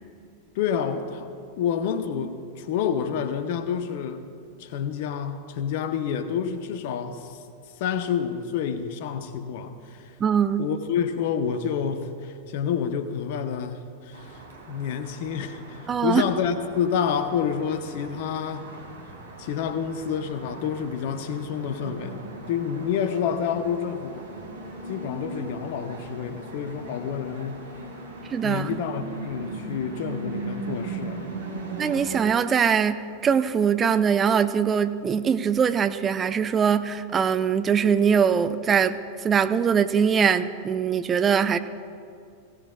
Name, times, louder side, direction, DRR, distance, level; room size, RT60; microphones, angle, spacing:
voice 1, 0.5-1.3 1.6-4.2 4.6-7.4 7.8-10.1 10.6-14.4 14.7-18.7 19.4-24.2 24.9-27.7 28.4-31.3, left 7 dB, 50° left, 10 dB, 0.9 m, -28 dB
voice 2, 10.2-10.7 15.9-16.2 28.3-28.7 31.8-39.0 39.2-41.6, right 7 dB, 25° right, 11 dB, 0.5 m, -22 dB
sound 1, 14.1-32.2, right 3 dB, 65° right, 2.4 m, -39 dB
19.5 x 17.0 x 2.4 m, 2.4 s
figure-of-eight pair, 90°, 0 cm